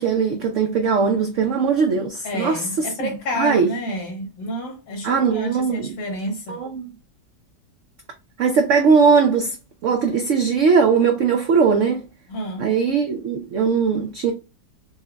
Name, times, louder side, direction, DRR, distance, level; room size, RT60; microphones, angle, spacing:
voice 1, 0.0-3.1 3.4-3.7 5.0-5.9 6.5-6.9 8.4-9.5 9.8-12.0 12.6-14.3, right 5 dB, 90° right, 0.6 m, -19 dB
voice 2, 2.2-6.6 12.3-12.7, equal, 85° left, 2.0 m, -29 dB
4.5 x 2.1 x 2.2 m
omnidirectional pair, 1.9 m